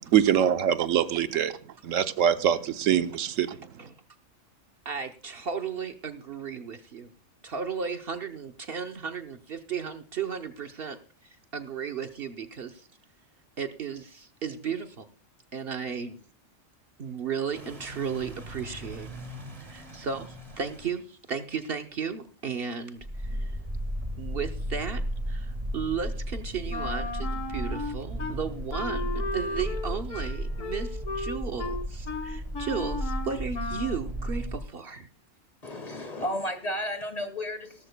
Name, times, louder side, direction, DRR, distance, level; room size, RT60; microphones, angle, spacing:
voice 1, 0.1-1.5 1.8-3.5, right 9 dB, 85° right, 1.1 m, -23 dB
voice 2, 4.8-7.1 7.4-12.9 13.6-15.1 15.5-16.2 17.0-19.1 19.6-23.5 24.2-25.0 25.3-35.1, right 6 dB, 55° right, 0.9 m, -35 dB
sound 1, 17.5-21.0 23.0-34.6, equal, 30° right, 1.5 m, -35 dB
Wind instrument woodwind instrument, 26.7-28.4 28.7-34.0, left 2 dB, 80° left, 1.5 m, -35 dB
voice 3, 35.6-37.9, left 1 dB, 30° left, 1.5 m, -33 dB
17.0 x 13.5 x 2.2 m
omnidirectional pair, 1.3 m